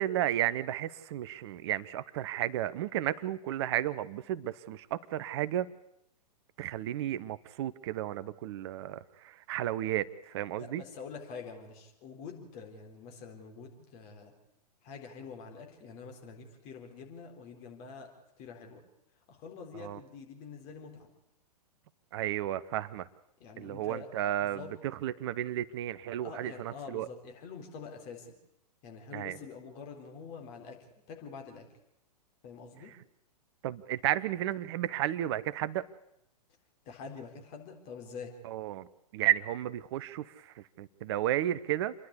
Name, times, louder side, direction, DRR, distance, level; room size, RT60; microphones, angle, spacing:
voice 1, 0.0-5.7 6.6-10.8 19.8-20.0 22.1-23.1 23.6-27.1 29.1-29.4 33.6-35.8 38.4-38.9 39.1-41.9, right 13 dB, 40° right, 17 dB, 0.7 m, -33 dB
voice 2, 10.6-14.3 14.8-18.1 18.4-18.8 19.3-21.1 23.4-24.7 26.2-28.3 28.8-30.8 31.1-31.6 32.4-32.9 36.9-38.3, left 5 dB, 35° left, 2 dB, 4.0 m, -46 dB
28.0 x 11.5 x 8.3 m, 0.81 s
figure-of-eight pair, 115°, 21 cm